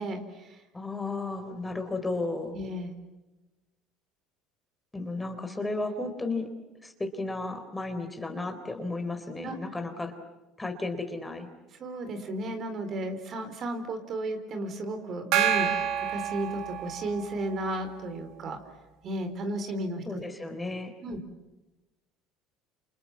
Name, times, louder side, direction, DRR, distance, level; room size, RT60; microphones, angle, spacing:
voice 1, 0.0-0.6 2.5-2.9 9.4-9.6 11.8-18.6 19.0-20.2 21.0-21.2, right 1 dB, 50° right, 7 dB, 4.2 m, -34 dB
voice 2, 0.7-2.5 4.9-6.5 6.8-10.1 10.6-11.5 20.1-20.9, left 2 dB, 15° left, 7 dB, 3.8 m, -33 dB
Gong, 15.3-17.3, right 9 dB, 65° right, 2.1 m, -28 dB
28.5 x 28.5 x 7.4 m, 1.1 s
hypercardioid pair, 80°, 0 cm